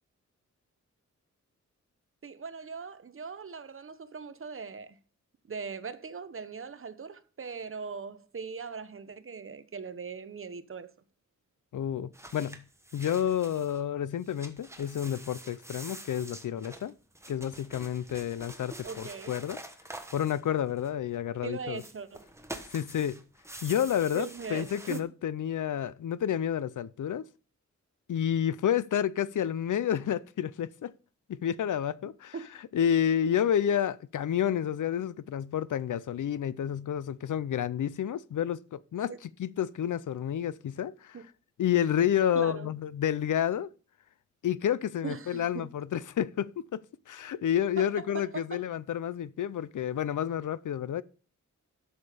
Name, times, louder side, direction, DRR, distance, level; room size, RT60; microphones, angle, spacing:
voice 1, 2.2-5.0 5.5-10.9 18.8-19.3 21.4-22.2 24.1-25.0 32.3-32.5 39.1-39.2 41.1-41.2 42.3-42.7 45.0-45.7 47.8-48.6, right 5 dB, 45° right, 0.8 m, -40 dB
voice 2, 11.7-12.6 12.9-16.9 17.3-19.6 20.1-21.8 22.7-23.2 23.6-27.2 28.1-30.9 31.3-32.3 32.7-41.2 41.6-43.7 44.4-46.8 47.1-51.0, left 9 dB, 85° left, 0.6 m, -30 dB
sound 1, 12.1-13.8 14.2-21.2 21.7-25.0, right 1 dB, 10° right, 1.1 m, -46 dB
11.5 x 6.6 x 5.0 m
wide cardioid pair, 115°, 30 cm